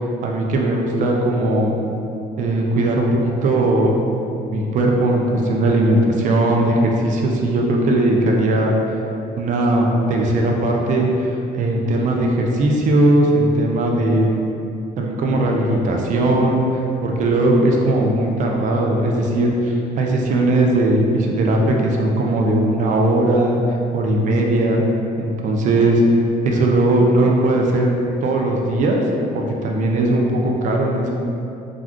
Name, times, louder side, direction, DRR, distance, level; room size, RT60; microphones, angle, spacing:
voice 1, 0.2-1.8 2.4-4.0 4.5-9.0 9.4-14.3 15.0-23.6 23.9-24.8 25.2-26.0 26.4-27.9 28.2-29.0 29.3-31.1, right 1 dB, 50° right, 0 dB, 0.4 m, -18 dB
2.4 x 2.3 x 3.5 m, 2.8 s
cardioid pair, 110°, 17 cm